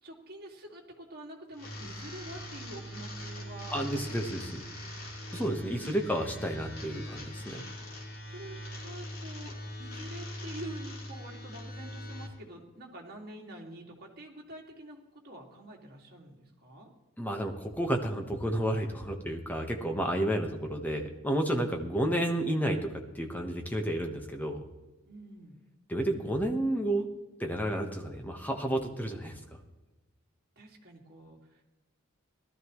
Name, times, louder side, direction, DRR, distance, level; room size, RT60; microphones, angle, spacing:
voice 1, 0.0-4.6 5.5-5.9 8.2-16.9 25.1-25.6 30.6-31.6, right 1 dB, 45° right, -1 dB, 2.3 m, -47 dB
sound 1, 1.5-12.3, left 1 dB, 80° left, 3.2 m, -41 dB
voice 2, 3.7-4.6 5.3-7.6 17.2-22.9 23.1-24.7 25.9-27.1 27.4-29.6, right 1 dB, 10° left, 3 dB, 1.2 m, -31 dB
18.0 x 13.0 x 3.2 m, 1.1 s
head